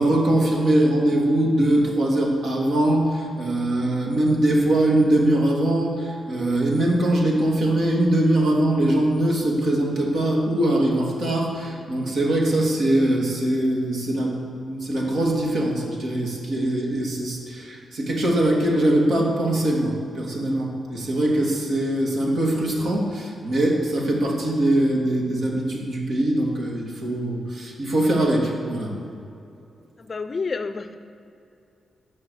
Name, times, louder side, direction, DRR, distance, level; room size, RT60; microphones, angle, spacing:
voice 1, 0.0-28.9, right 1 dB, 65° right, -2 dB, 2.7 m, -22 dB
voice 2, 30.0-31.0, left 4 dB, 35° left, 10 dB, 0.6 m, -29 dB
13.0 x 6.0 x 8.0 m, 2.6 s
wide cardioid pair, 125°, 0 cm